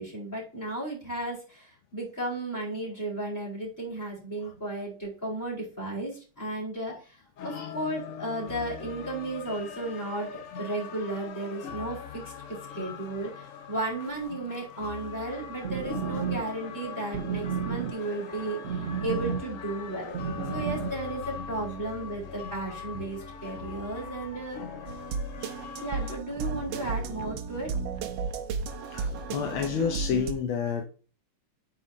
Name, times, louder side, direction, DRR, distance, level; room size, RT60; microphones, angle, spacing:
voice 1, 0.0-7.2 7.4-12.2 12.7-20.1 20.5-24.8 25.8-27.7 30.1-30.2, right 2 dB, 10° left, 4.1 m, -34 dB
sound 1, 7.4-26.2, left 7 dB, 60° left, 0.8 m, -41 dB
sound 2, 15.5-21.1, right 7 dB, 50° right, 0.9 m, -34 dB
sound 3, 24.9-30.3, right 5 dB, 75° right, 1.6 m, -34 dB
voice 2, 28.9-30.8, left 6 dB, 75° left, 1.7 m, -31 dB
9.2 x 5.4 x 2.8 m
omnidirectional pair, 2.3 m